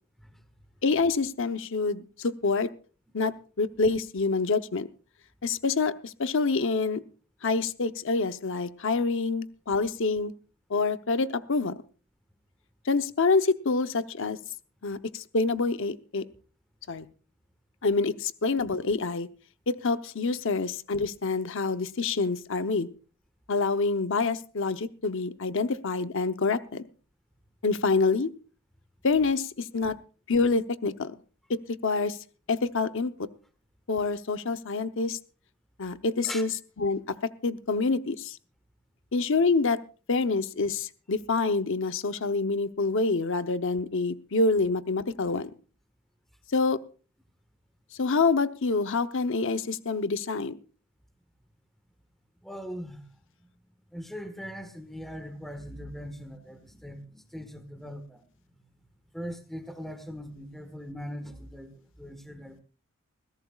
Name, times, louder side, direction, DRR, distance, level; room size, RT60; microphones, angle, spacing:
voice 1, 0.8-2.7 3.1-4.9 5.4-7.0 7.4-10.3 10.7-11.8 12.9-14.4 14.8-16.2 16.9-17.1 17.8-19.3 19.7-22.9 23.5-26.8 27.6-28.3 29.0-30.0 30.3-31.2 31.5-32.2 32.5-33.3 33.9-35.2 35.8-36.5 36.8-37.0 37.4-38.4 39.1-39.8 40.1-45.5 46.5-46.8 48.0-50.6, left 4 dB, 65° left, 11 dB, 0.8 m, -27 dB
voice 2, 52.4-53.1 53.4-53.5 53.9-58.4 59.1-62.6, equal, ahead, 9 dB, 1.4 m, -40 dB
21.0 x 16.0 x 2.4 m, 0.36 s
head